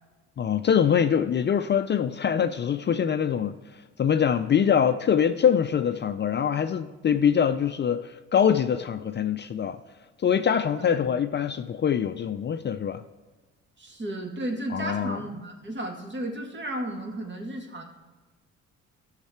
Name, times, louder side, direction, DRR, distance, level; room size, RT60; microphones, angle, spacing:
voice 1, 0.4-9.8 10.2-13.0 14.7-15.2, left 8 dB, 35° left, 9 dB, 0.4 m, -24 dB
voice 2, 13.8-17.8, right 1 dB, 40° right, 1 dB, 2.2 m, -34 dB
13.0 x 6.6 x 4.4 m, 1.3 s
cardioid pair, 90°, 30 cm